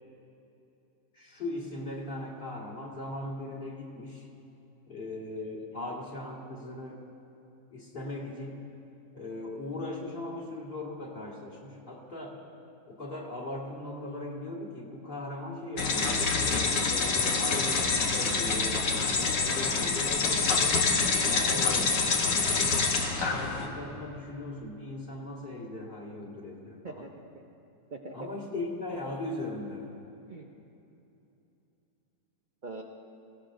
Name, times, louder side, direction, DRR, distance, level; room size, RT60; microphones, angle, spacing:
voice 1, 1.1-4.3 4.9-7.1 7.7-8.7 9.1-12.4 12.9-18.8 19.1-20.9 21.3-22.8 23.2-27.1 28.1-29.9, left 2 dB, 30° left, -4 dB, 1.9 m, -39 dB
sound 1, 15.8-23.7, left 4 dB, 75° left, 1.7 m, -26 dB
voice 2, 20.2-20.6 26.8-27.4 27.9-28.2 30.3-30.5 32.6-32.8, right 3 dB, 85° right, 0 dB, 0.4 m, -44 dB
19.0 x 16.5 x 2.6 m, 2.8 s
omnidirectional pair, 1.9 m